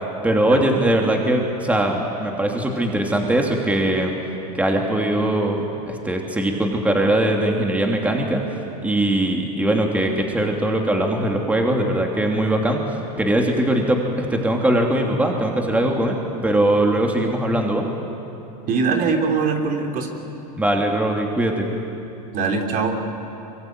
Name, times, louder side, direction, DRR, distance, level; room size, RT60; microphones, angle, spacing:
voice 1, 0.2-4.2 4.6-8.4 8.8-12.8 13.2-16.2 16.4-17.9 20.6-21.7, right 1 dB, 5° right, 1 dB, 2.9 m, -21 dB
voice 2, 18.7-20.1 22.3-23.0, right 4 dB, 40° right, 3 dB, 3.3 m, -22 dB
24.0 x 24.0 x 9.4 m, 2.9 s
hypercardioid pair, 115°, 21 cm